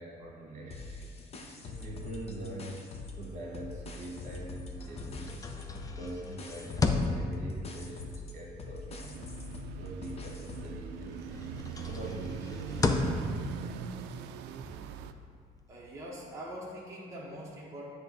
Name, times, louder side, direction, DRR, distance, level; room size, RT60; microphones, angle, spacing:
voice 1, 0.0-2.9 3.2-9.3 9.8-11.4 11.8-12.9, right 1 dB, 45° right, -2 dB, 1.5 m, -44 dB
sound 1, 0.7-3.3 3.5-10.8, left 3 dB, 35° left, 0.9 m, -43 dB
sound 2, 4.2-10.6 11.0-16.4, left 3 dB, 20° left, 0.5 m, -36 dB
sound 3, 9.1-15.1, right 8 dB, 90° right, 0.4 m, -41 dB
voice 2, 15.7-17.9, equal, 20° right, -6 dB, 1.2 m, -43 dB
7.7 x 3.6 x 5.3 m, 2.2 s
cardioid pair, 110°, 17 cm